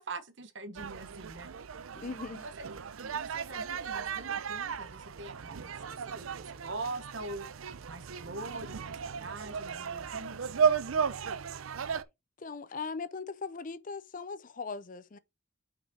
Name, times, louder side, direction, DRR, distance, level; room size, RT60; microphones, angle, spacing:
voice 1, 0.0-1.5 2.3-2.6 3.0-7.5 7.9-10.7, right 2 dB, 65° right, 1.1 m, -43 dB
sound 1, 0.8-12.0, right 6 dB, 85° right, 0.6 m, -35 dB
voice 2, 1.9-2.4 12.4-15.2, left 4 dB, 40° left, 0.5 m, -39 dB
5.9 x 5.5 x 4.6 m
head